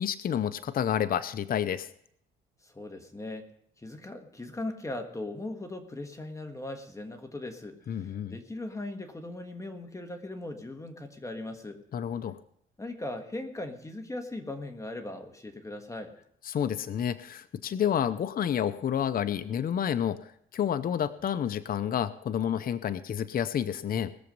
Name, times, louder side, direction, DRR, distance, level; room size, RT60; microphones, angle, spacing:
voice 1, 0.0-1.9 7.9-8.4 11.9-12.4 16.4-24.1, left 9 dB, 45° left, 13 dB, 0.6 m, -29 dB
voice 2, 2.6-3.5 3.8-11.8 12.8-16.1, left 2 dB, 15° left, 6 dB, 1.5 m, -39 dB
20.0 x 7.0 x 5.3 m, 0.70 s
cardioid pair, 90°, 20 cm